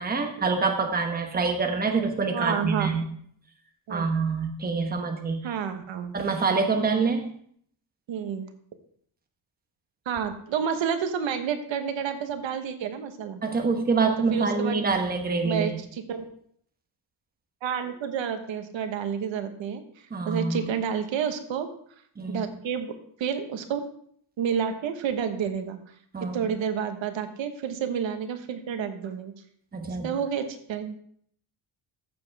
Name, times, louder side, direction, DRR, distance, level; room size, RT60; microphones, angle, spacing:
voice 1, 0.0-3.0 3.9-5.5 6.1-7.3 13.4-15.7 20.1-20.7 22.2-22.5 26.1-26.4 29.7-30.1, right 4 dB, 20° right, 3 dB, 1.1 m, -26 dB
voice 2, 2.3-2.9 3.9-4.0 5.4-6.1 8.1-8.5 10.1-13.4 14.3-14.8 15.4-16.2 17.6-19.8 20.3-21.7 22.3-23.8 24.4-25.8 26.2-29.3 29.9-30.9, right 7 dB, 90° right, 8 dB, 1.3 m, -30 dB
14.0 x 7.4 x 3.4 m, 0.63 s
wide cardioid pair, 170°, 44 cm